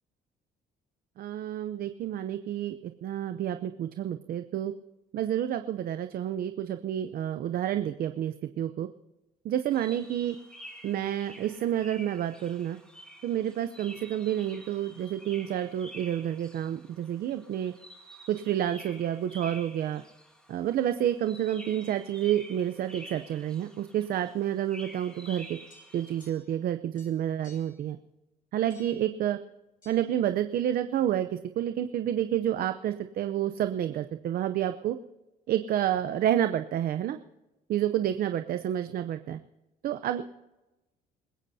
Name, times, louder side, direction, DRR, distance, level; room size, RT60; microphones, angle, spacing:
voice 1, 1.2-4.7 5.1-8.9 9.4-10.4 10.8-12.8 13.2-17.7 18.3-20.0 20.5-25.5 25.9-28.0 28.5-29.4 29.9-35.0 35.5-37.2 37.7-39.4 39.8-40.2, right 11 dB, 60° right, 9 dB, 0.7 m, -29 dB
sound 1, 9.7-26.3, right 1 dB, 5° left, 2.6 m, -49 dB
sound 2, 25.7-26.7 26.9-27.8 28.7-29.1 29.8-30.0, left 4 dB, 50° left, 7.4 m, -58 dB
27.0 x 15.5 x 2.8 m, 1.0 s
cardioid pair, 110°, 17 cm